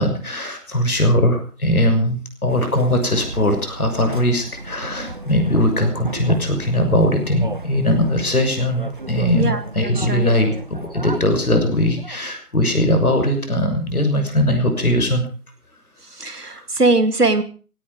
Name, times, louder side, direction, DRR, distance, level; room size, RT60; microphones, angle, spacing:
voice 1, 0.0-15.3 16.6-16.7, left 1 dB, 70° left, 5 dB, 6.6 m, -20 dB
sound 1, 2.5-12.3, right 2 dB, 35° right, 1.0 m, -35 dB
voice 2, 9.3-10.3 16.0-17.4, right 2 dB, 90° right, 12 dB, 2.3 m, -21 dB
17.0 x 17.0 x 5.0 m, 0.38 s
figure-of-eight pair, 160°, 46 cm